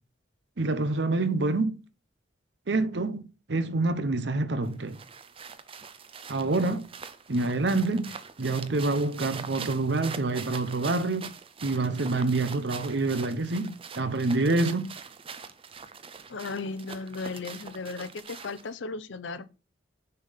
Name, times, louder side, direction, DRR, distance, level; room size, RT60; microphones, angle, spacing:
voice 1, 0.6-1.8 2.7-3.2 3.5-5.0 6.3-6.9 7.3-11.3 11.6-14.9, right 2 dB, 65° right, 0.7 m, -27 dB
sound 1, 4.6-18.7, right 6 dB, 30° right, 0.5 m, -43 dB
voice 2, 16.3-19.5, left 3 dB, 75° left, 0.6 m, -36 dB
6.6 x 3.5 x 5.7 m
head